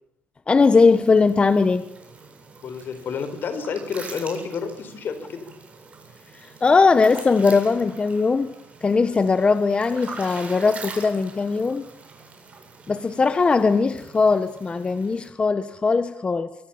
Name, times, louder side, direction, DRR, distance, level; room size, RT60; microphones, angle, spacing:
voice 1, 0.5-1.8 6.6-8.5 8.8-11.8 12.9-16.5, left 4 dB, 25° left, 1.2 m, -19 dB
sound 1, 0.6-15.3, right 4 dB, 35° right, 7.8 m, -43 dB
voice 2, 2.6-5.5, left 6 dB, 55° left, 4.4 m, -30 dB
24.0 x 23.5 x 7.2 m
cardioid pair, 120°, 4 cm